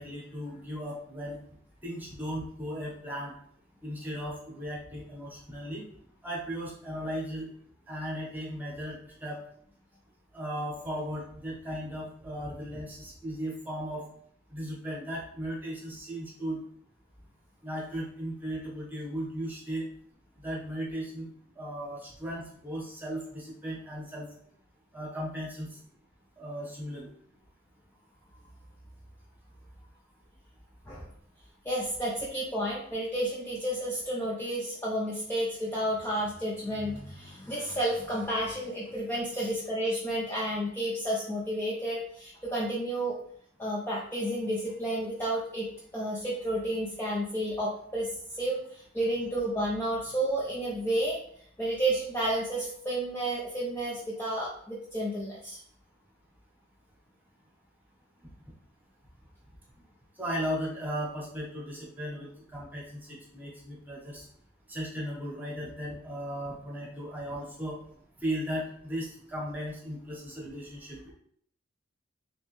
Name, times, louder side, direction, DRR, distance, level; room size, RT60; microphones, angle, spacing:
voice 1, 0.0-1.4 1.8-3.3 3.8-5.8 6.2-7.5 7.9-9.4 10.3-14.0 14.5-16.6 17.6-19.9 20.4-21.3 21.6-24.3 24.9-25.7 26.4-27.1 39.3-39.5 60.2-64.2 64.7-67.8 68.2-71.1, equal, 10° right, -4 dB, 1.0 m, -36 dB
voice 2, 31.6-43.2 43.6-45.7 45.9-48.1 48.4-51.2 51.6-55.6, right 1 dB, 10° left, -6 dB, 0.5 m, -31 dB
3.2 x 3.0 x 3.1 m, 0.64 s
head